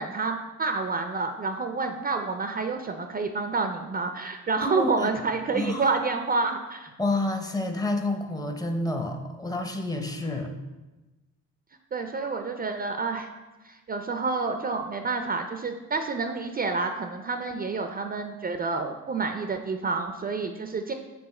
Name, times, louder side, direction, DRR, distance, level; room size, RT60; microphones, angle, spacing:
voice 1, 0.0-6.9 11.9-13.3 13.6-20.9, right 4 dB, 30° right, 6 dB, 0.4 m, -29 dB
voice 2, 4.6-5.1 5.5-5.9 7.0-10.5, left 2 dB, 10° left, 5 dB, 0.7 m, -29 dB
7.0 x 3.4 x 4.2 m, 1.1 s
cardioid pair, 90°, 30 cm